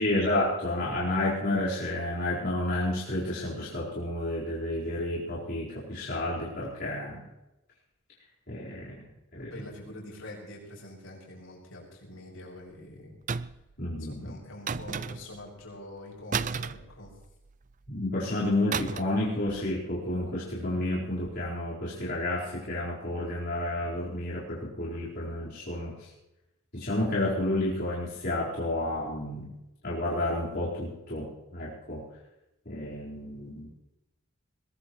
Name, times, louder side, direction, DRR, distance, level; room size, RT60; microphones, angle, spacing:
voice 1, 0.0-7.2 8.5-9.0 9.3-9.5 13.8-14.3 17.9-26.1 26.7-29.5 29.8-32.0 32.6-33.7, left 1 dB, 50° left, -8 dB, 4.5 m, -30 dB
voice 2, 9.4-13.1 14.0-17.1, left 1 dB, 80° left, -3 dB, 6.8 m, -45 dB
sound 1, 13.3-13.7 14.7-15.4 16.3-17.5 18.7-19.2 19.5-19.7, right 6 dB, 35° right, 0.4 m, -33 dB
21.5 x 21.0 x 3.2 m, 0.94 s
head